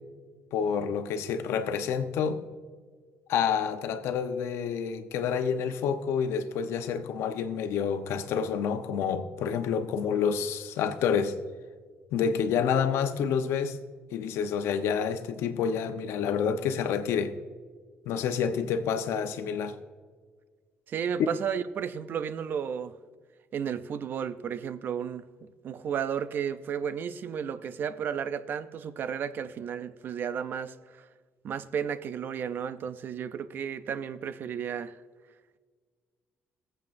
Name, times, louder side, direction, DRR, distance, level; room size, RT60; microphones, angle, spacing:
voice 1, 0.5-2.4 3.3-11.3 12.1-13.8 14.1-17.3 18.1-19.7, left 7 dB, 85° left, 0.9 m, -28 dB
voice 2, 20.9-22.9 23.5-31.1 31.4-35.0, right 7 dB, 50° right, 0.5 m, -33 dB
23.0 x 7.8 x 2.6 m
cardioid pair, 145°, 4 cm